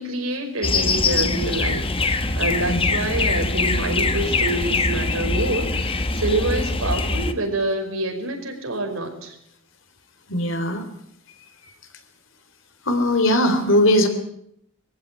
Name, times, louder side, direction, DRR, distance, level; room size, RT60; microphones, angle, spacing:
voice 1, 0.0-9.4, right 2 dB, 90° right, 4 dB, 5.3 m, -27 dB
sound 1, 0.6-7.3, left 3 dB, 25° left, 1.4 m, -23 dB
voice 2, 10.3-10.8 12.9-14.1, left 1 dB, 65° left, 7 dB, 3.7 m, -19 dB
22.0 x 15.5 x 9.3 m, 0.72 s
head